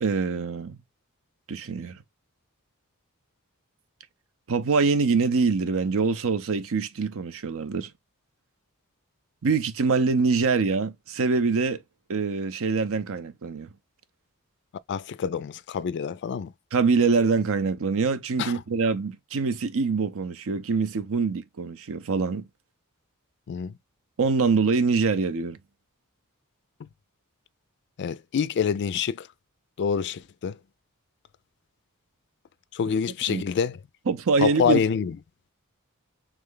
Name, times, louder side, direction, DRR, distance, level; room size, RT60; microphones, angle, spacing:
voice 1, 0.0-0.8 1.5-2.0 4.5-7.9 9.4-11.8 12.1-13.7 16.7-22.4 24.2-25.6 33.3-33.4 34.1-34.8, right 4 dB, 65° right, 0.6 m, -24 dB
voice 2, 14.9-16.5 18.4-18.5 23.5-23.7 26.8-26.9 28.0-29.3 29.8-30.6 32.7-33.8 34.4-35.2, left 7 dB, 50° left, 0.3 m, -26 dB
3.6 x 3.3 x 3.7 m
head